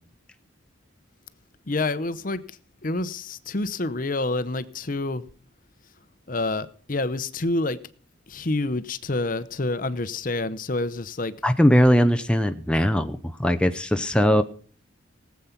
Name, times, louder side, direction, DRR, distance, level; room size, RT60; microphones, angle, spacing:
voice 1, 1.7-2.4 2.8-5.2 6.3-7.8 8.3-11.3, left 2 dB, 40° left, 14 dB, 0.8 m, -27 dB
voice 2, 11.4-14.4, equal, 5° left, 7 dB, 0.6 m, -20 dB
18.5 x 8.4 x 5.8 m, 0.42 s
head